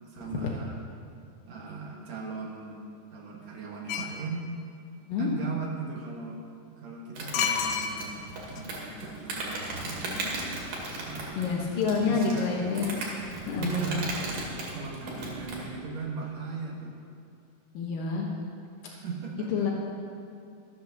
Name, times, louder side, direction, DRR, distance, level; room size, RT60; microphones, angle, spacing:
voice 1, 0.1-0.8 1.5-2.8 3.1-4.5 5.2-6.4 6.8-10.6 10.9-12.9 13.6-14.2 14.7-17.0 18.8-19.7, right 4 dB, 60° right, 0 dB, 2.4 m, -38 dB
sound 1, 3.9-4.2 7.3-8.3 8.6-8.7, left 7 dB, 70° left, 1.9 m, -28 dB
Insect, 7.2-15.7, right 2 dB, 75° right, 3.8 m, -37 dB
sound 2, 9.7-15.8, left 1 dB, 30° left, 2.2 m, -48 dB
voice 2, 11.4-13.0 13.5-14.0 17.7-18.3 19.5-19.7, left 5 dB, 90° left, -2 dB, 2.9 m, -28 dB
13.5 x 8.7 x 6.9 m, 2.5 s
omnidirectional pair, 3.8 m